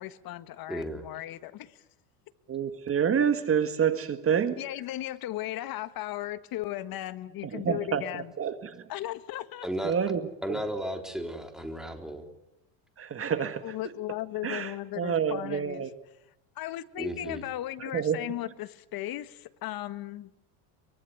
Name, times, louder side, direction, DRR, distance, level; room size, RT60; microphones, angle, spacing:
voice 1, 0.0-1.8 4.6-8.3 8.9-9.7 13.6-15.8 16.5-20.3, left 14 dB, 45° left, 1.7 m, -36 dB
voice 2, 0.7-1.1 9.6-9.9 10.4-12.3 17.0-17.4, equal, ahead, 3.7 m, -34 dB
voice 3, 2.5-4.6 7.5-8.9 9.8-10.2 10.5-10.6 13.0-13.7 14.4-15.9 17.8-18.2, right 7 dB, 25° right, 1.7 m, -28 dB
24.0 x 23.5 x 9.5 m
supercardioid pair, 130°, 49 cm